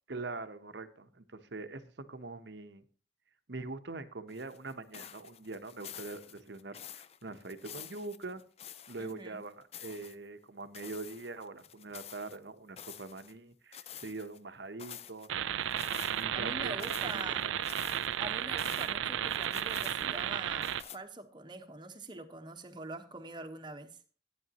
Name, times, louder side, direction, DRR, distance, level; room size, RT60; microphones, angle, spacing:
voice 1, 0.1-2.8 3.5-6.8 7.2-8.4 8.9-15.3 16.2-17.5, right 3 dB, 60° right, 0.9 m, -43 dB
sound 1, 4.3-9.2 9.5-10.1 10.7-12.4 12.8-13.4 13.7-14.4 14.8-15.3 15.7-16.2 16.7-18.9 19.3-20.3 20.6-21.0, left 9 dB, 35° left, 0.4 m, -49 dB
voice 2, 9.0-9.4 16.3-17.5 18.2-24.0, right 2 dB, 25° right, 1.1 m, -44 dB
sound 2, 15.3-20.8, right 10 dB, 85° right, 0.4 m, -33 dB
14.0 x 9.6 x 2.9 m
head